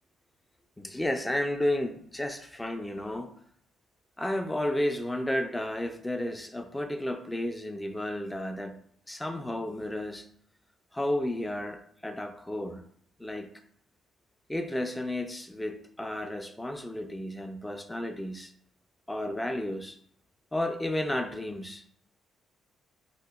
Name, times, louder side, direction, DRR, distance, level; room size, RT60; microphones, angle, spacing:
voice 1, 0.8-3.3 4.2-8.8 9.1-10.3 10.9-12.8 13.2-13.5 14.5-18.5 19.1-20.0 20.5-21.8, left 1 dB, 10° left, 0.4 m, -32 dB
3.4 x 2.8 x 2.2 m
cardioid pair, 90°, 0 cm